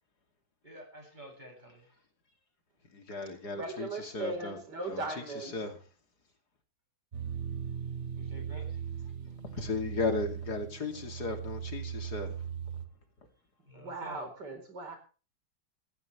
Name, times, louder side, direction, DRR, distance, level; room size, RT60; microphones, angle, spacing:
voice 1, 0.6-1.8 8.2-8.7 13.7-14.3, equal, 25° right, 8.0 m, -49 dB
voice 2, 2.9-4.6 4.9-5.8 9.4-12.8, left 3 dB, 70° left, 3.4 m, -36 dB
voice 3, 3.5-5.5 13.8-15.0, right 2 dB, 90° right, 5.1 m, -38 dB
sound 1, 7.1-12.9, right 8 dB, 45° right, 1.6 m, -38 dB
20.0 x 15.0 x 3.4 m
omnidirectional pair, 1.8 m